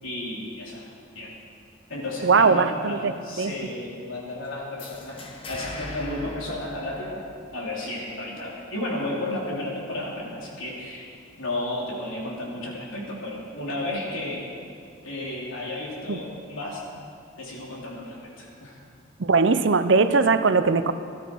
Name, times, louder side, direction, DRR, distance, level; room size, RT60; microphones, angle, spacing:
voice 1, 0.0-0.9 1.1-1.4 1.9-7.2 7.5-11.1 11.4-14.5 15.0-16.8 17.4-18.8, left 1 dB, 75° left, -4 dB, 3.4 m, -33 dB
voice 2, 2.2-3.1 3.4-3.5 16.1-16.2 19.2-20.9, right 4 dB, 60° right, 11 dB, 0.6 m, -20 dB
sound 1, 4.8-7.5, left 2 dB, 25° left, 1.0 m, -40 dB
18.0 x 12.5 x 4.7 m, 2.3 s
head